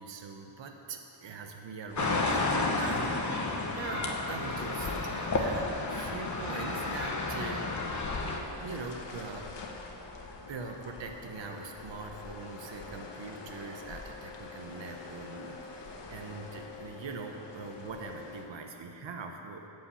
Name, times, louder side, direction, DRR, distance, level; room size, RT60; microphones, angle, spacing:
voice 1, 0.0-7.6 8.6-9.5 10.5-19.6, right 4 dB, 70° right, 3 dB, 1.0 m, -42 dB
sound 1, 1.9-18.5, left 4 dB, 65° left, 1.3 m, -45 dB
sound 2, 2.0-8.4, left 2 dB, 40° left, 1.2 m, -31 dB
15.5 x 5.5 x 7.0 m, 2.9 s
wide cardioid pair, 135°, 46 cm